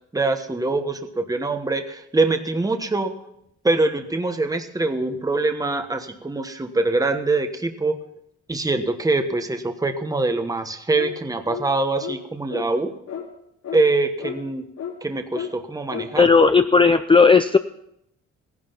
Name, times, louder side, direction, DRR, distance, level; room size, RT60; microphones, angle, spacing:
voice 1, 0.1-3.1 3.6-8.0 8.5-12.9 13.7-14.6 15.0-16.3, right 3 dB, 10° right, 7 dB, 1.3 m, -23 dB
sound 1, 10.9-11.2 11.5-11.7 12.0-12.2 12.5-12.7 13.1-13.3 13.6-13.8 14.2-14.4 14.8-14.9 15.3-15.5 15.9-16.1, left 9 dB, 70° left, 4.6 m, -32 dB
voice 2, 16.2-17.6, left 4 dB, 15° left, 9 dB, 0.5 m, -14 dB
15.5 x 11.0 x 5.8 m, 0.78 s
cardioid pair, 90°, 30 cm